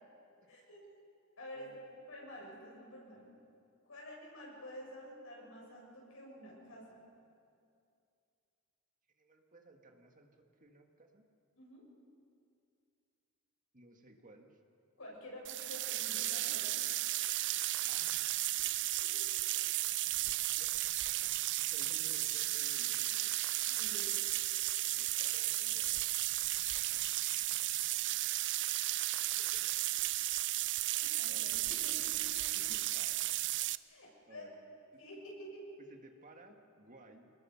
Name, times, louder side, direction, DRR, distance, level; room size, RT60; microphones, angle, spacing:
voice 1, 0.5-0.8 1.4-1.7 2.1-3.3 3.9-7.0 11.6-11.9 15.0-16.7 18.7-18.8 23.7-24.2 31.0-32.4 33.9-34.4 35.0-35.7, equal, 75° left, -2 dB, 7.3 m, -50 dB
voice 2, 1.5-1.9 9.2-11.2 13.7-14.6 17.8-18.8 20.6-20.7 21.6-23.4 24.8-26.1 26.6-26.8 29.3-29.4 31.2-31.6 32.5-33.3 34.3-35.0 35.9-37.3, right 2 dB, 40° right, 3 dB, 1.7 m, -59 dB
sound 1, 15.4-33.7, right 16 dB, 60° right, 0.4 m, -34 dB
27.5 x 20.0 x 5.8 m, 2.5 s
head